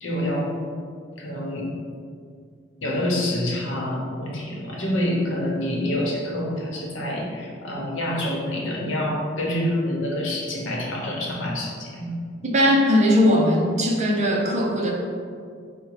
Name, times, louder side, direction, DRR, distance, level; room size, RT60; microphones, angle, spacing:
voice 1, 0.0-0.5 1.2-1.7 2.8-12.1, left 1 dB, 80° left, -2 dB, 0.9 m, -27 dB
voice 2, 12.4-14.9, equal, 35° right, -1 dB, 0.6 m, -19 dB
5.1 x 2.2 x 4.6 m, 2.2 s
head